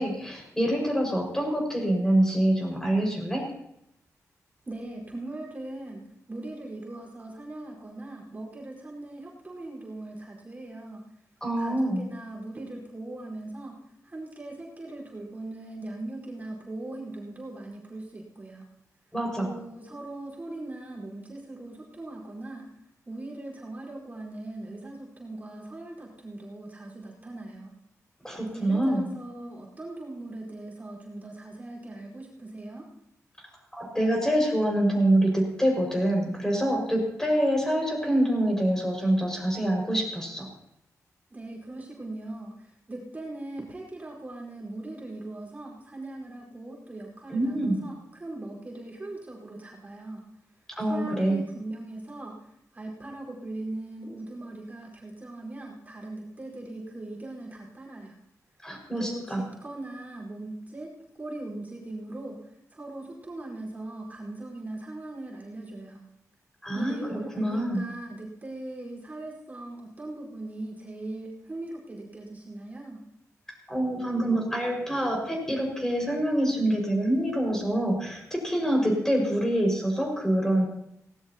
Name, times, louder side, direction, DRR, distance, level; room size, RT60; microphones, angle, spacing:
voice 1, 0.0-3.5 11.4-12.1 19.1-19.5 28.2-29.1 33.7-40.5 47.3-47.8 50.8-51.4 58.6-59.4 66.6-67.0 67.4-67.8 73.7-80.7, right 1 dB, 10° left, 0 dB, 5.8 m, -25 dB
voice 2, 4.6-6.0 6.3-11.0 11.6-13.8 14.0-18.6 19.4-22.7 23.0-27.7 28.5-32.9 41.3-50.2 50.8-52.5 52.7-58.1 59.0-66.0 66.7-73.0, right 2 dB, 25° right, -2 dB, 4.8 m, -40 dB
18.5 x 18.0 x 3.0 m, 0.77 s
wide cardioid pair, 110°, 6 cm